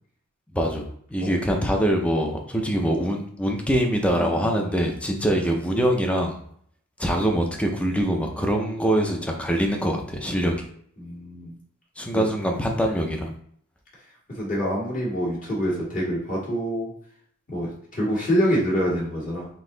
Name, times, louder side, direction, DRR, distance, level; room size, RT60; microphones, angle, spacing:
voice 1, 0.5-6.3 7.0-10.5 12.0-13.3, equal, 5° left, 2 dB, 0.5 m, -24 dB
voice 2, 4.2-4.5 10.3-10.5 11.0-11.6 12.1-12.3 14.3-16.9 17.5-19.5, equal, 40° left, -7 dB, 1.7 m, -26 dB
4.0 x 2.7 x 3.8 m, 0.63 s
head